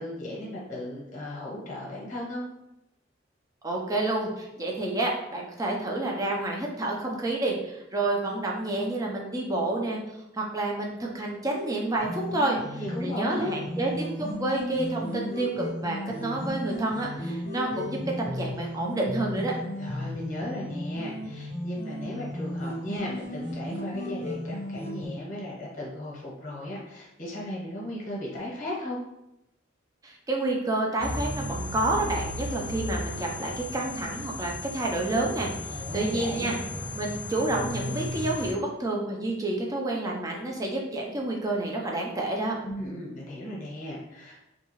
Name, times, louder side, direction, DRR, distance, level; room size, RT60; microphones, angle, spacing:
voice 1, 0.0-2.4 12.7-13.5 19.8-29.0 35.7-36.5 42.6-44.5, left 1 dB, 40° left, -4 dB, 0.8 m, -36 dB
voice 2, 3.6-12.6 13.0-19.5 30.0-36.6 37.0-42.6, right 2 dB, 20° right, -1 dB, 0.4 m, -29 dB
sound 1, 12.0-25.1, equal, 65° right, 1.3 m, -35 dB
sound 2, 31.0-38.5, left 1 dB, 60° left, 0.4 m, -35 dB
2.7 x 2.3 x 2.9 m, 0.89 s
head